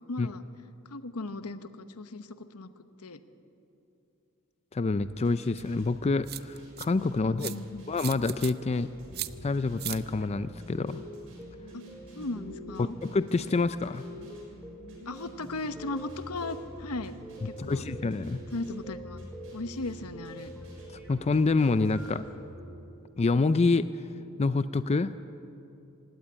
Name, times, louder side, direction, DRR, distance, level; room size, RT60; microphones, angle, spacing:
voice 1, 0.1-0.4 0.9-2.7 3.0-3.2 7.2-7.8 11.7-11.8 12.1-13.0 15.1-17.2 17.4-17.8 18.5-19.2 19.5-20.5, left 2 dB, 85° left, 11 dB, 1.0 m, -37 dB
voice 2, 4.7-7.5 7.9-8.9 9.4-11.0 12.8-14.0 17.6-18.4 21.1-22.2 23.2-23.9 24.4-25.1, left 3 dB, 30° left, 13 dB, 0.4 m, -27 dB
sound 1, 5.0-22.1, right 1 dB, 65° right, 6.7 m, -55 dB
sound 2, 5.6-5.7 6.3-6.9 7.4-7.6 8.0-8.5 9.1-9.3 9.8-10.0, right 15 dB, 45° right, 0.6 m, -36 dB
sound 3, 8.9-22.7, equal, 5° right, 2.5 m, -45 dB
17.5 x 17.0 x 9.8 m, 2.8 s
head